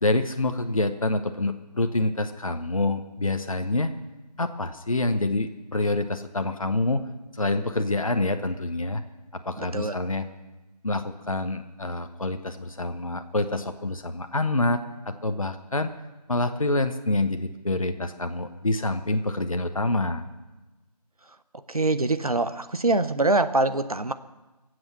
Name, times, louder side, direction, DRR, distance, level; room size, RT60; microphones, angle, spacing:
voice 1, 0.0-3.9 4.4-7.0 7.3-9.0 9.3-10.3 10.8-15.9 16.3-20.2, left 2 dB, 55° left, 8 dB, 0.8 m, -27 dB
voice 2, 9.6-10.0 21.7-24.1, right 2 dB, 60° right, 11 dB, 0.8 m, -24 dB
22.5 x 7.9 x 5.8 m, 1.1 s
figure-of-eight pair, 170°, 21 cm